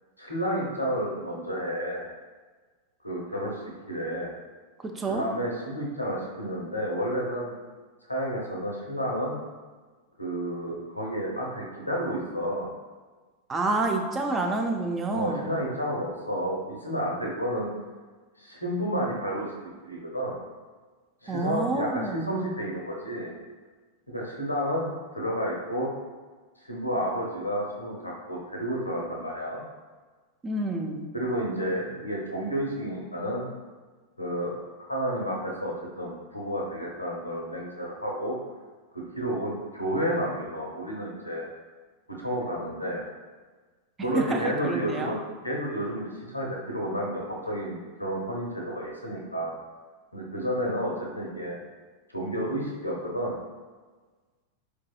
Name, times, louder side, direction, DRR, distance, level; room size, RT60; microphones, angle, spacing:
voice 1, 0.2-2.1 3.0-4.3 5.1-7.6 8.0-9.4 10.2-12.7 15.1-17.7 18.4-20.4 21.2-23.3 24.1-25.9 26.6-29.6 31.1-33.5 34.2-34.5 34.9-38.4 38.9-41.4 42.1-43.0 44.0-49.5 50.1-51.6 52.1-53.4, equal, 85° left, -2 dB, 0.7 m, -31 dB
voice 2, 4.8-5.2 13.5-15.5 21.3-22.3 30.4-31.1 44.1-45.1, right 2 dB, 20° right, 2 dB, 0.4 m, -28 dB
4.5 x 2.7 x 2.3 m, 1.4 s
figure-of-eight pair, 90°, 0 cm